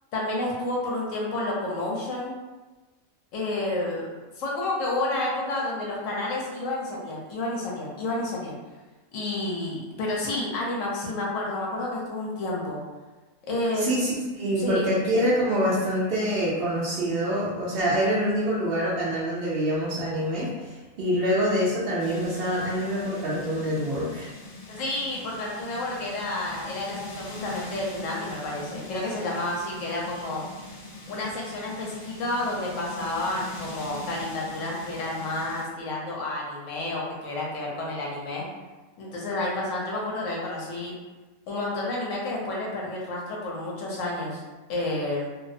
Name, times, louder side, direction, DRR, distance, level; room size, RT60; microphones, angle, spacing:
voice 1, 0.1-2.4 3.3-4.1 4.4-8.6 9.1-12.8 13.5-13.9 14.6-14.8 24.7-30.4 31.1-38.4 39.0-40.9 41.5-44.4 44.7-45.3, left 2 dB, 70° left, -3 dB, 1.0 m, -30 dB
voice 2, 13.7-24.3, equal, 65° right, -7 dB, 0.6 m, -26 dB
sound 1, 22.0-35.6, left 2 dB, 40° left, 0.7 m, -42 dB
2.6 x 2.0 x 2.5 m, 1.2 s
omnidirectional pair, 1.5 m